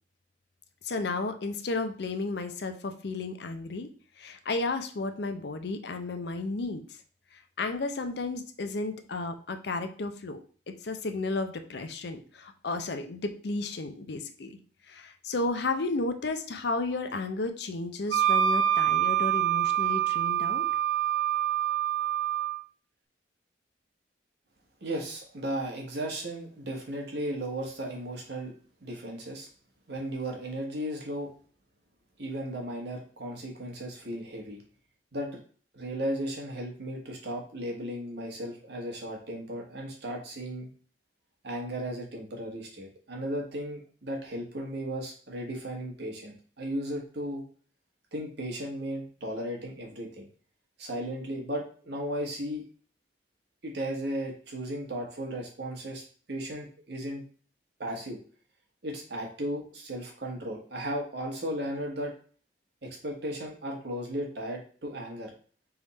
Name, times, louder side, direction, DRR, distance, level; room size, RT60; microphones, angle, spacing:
voice 1, 0.8-3.9 4.2-6.8 7.6-10.4 10.8-14.6 14.9-20.6, left 3 dB, 60° left, 7 dB, 0.6 m, -33 dB
Wind instrument woodwind instrument, 18.1-22.6, right 10 dB, 80° right, 0.4 m, -26 dB
voice 2, 24.8-28.5 28.8-29.5 29.9-31.3 32.2-34.6 35.1-35.3 35.7-40.7 41.4-47.4 48.1-50.3 50.8-52.6 53.6-56.0 56.3-57.2 57.8-58.2 58.8-62.1 62.8-65.3, right 1 dB, 60° right, 0 dB, 1.3 m, -35 dB
3.5 x 3.4 x 4.0 m, 0.43 s
head